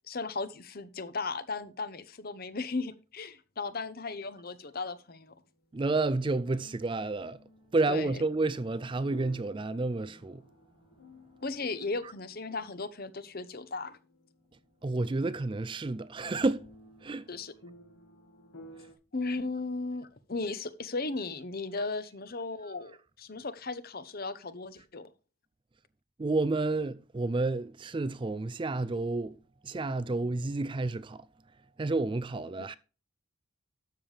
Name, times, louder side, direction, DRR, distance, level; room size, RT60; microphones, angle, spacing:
voice 1, 0.1-5.3 7.9-8.2 11.4-14.0 17.3-17.5 19.1-22.9 23.2-25.1, left 3 dB, 45° left, 0.9 m, -36 dB
sound 1, 4.1-5.5 6.4-15.2 15.6-15.7 16.2-18.9, equal, 65° left, 2.1 m, -55 dB
voice 2, 5.7-7.4 7.7-10.4 14.8-16.7 17.0-17.2 26.2-29.4 29.6-31.2 31.8-32.7, right 3 dB, 25° right, 0.3 m, -30 dB
12.5 x 7.3 x 3.4 m
head